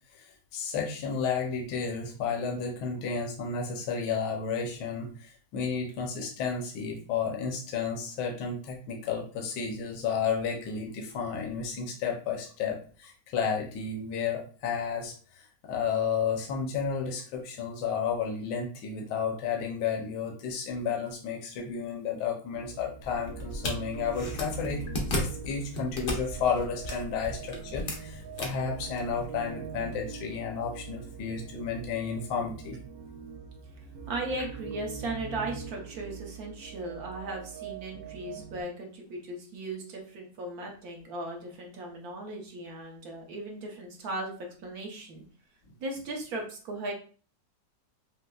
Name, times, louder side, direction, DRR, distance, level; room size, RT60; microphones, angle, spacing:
voice 1, 0.1-24.8 25.2-32.8, left 6 dB, 70° left, 1 dB, 1.2 m, -32 dB
sound 1, 22.5-38.6, right 6 dB, 85° right, 1.3 m, -43 dB
sound 2, 23.0-29.5, left 1 dB, 55° left, 0.6 m, -36 dB
voice 2, 34.1-44.3 44.6-45.2 45.8-46.9, right 2 dB, 60° right, 1 dB, 1.2 m, -37 dB
5.2 x 2.0 x 2.3 m, 0.41 s
omnidirectional pair, 2.0 m